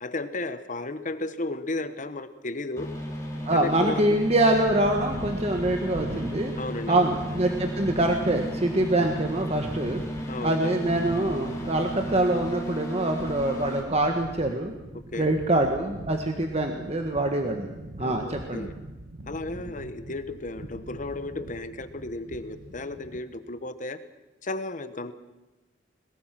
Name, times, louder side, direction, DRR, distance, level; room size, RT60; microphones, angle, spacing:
voice 1, 0.0-2.9 3.5-4.0 6.6-7.0 10.3-10.8 15.1-15.3 18.0-18.8 19.3-24.0 24.4-25.1, left 2 dB, 45° left, 11 dB, 1.2 m, -34 dB
sound 1, 2.8-13.8, equal, 15° left, 3.8 m, -35 dB
voice 2, 3.5-6.5 6.9-10.0 10.4-14.7 15.2-17.7 18.0-18.7, right 1 dB, 35° right, 4 dB, 1.7 m, -25 dB
sound 2, 4.5-23.2, right 1 dB, 65° right, 1.7 m, -41 dB
22.0 x 20.5 x 6.1 m, 1.1 s
head